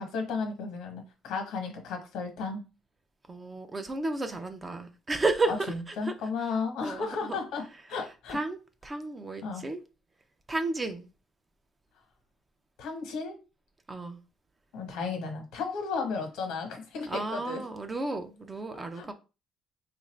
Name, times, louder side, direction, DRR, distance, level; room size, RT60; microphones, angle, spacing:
voice 1, 0.0-2.6 5.5-8.4 9.4-9.6 12.8-13.4 14.7-17.6 18.9-19.1, left 4 dB, 85° left, 1.1 m, -34 dB
voice 2, 3.3-6.1 6.8-7.4 8.3-9.8 10.5-11.1 13.9-14.2 17.1-19.1, right 2 dB, 20° right, 0.4 m, -32 dB
3.6 x 2.5 x 3.2 m
cardioid pair, 130°, 0 cm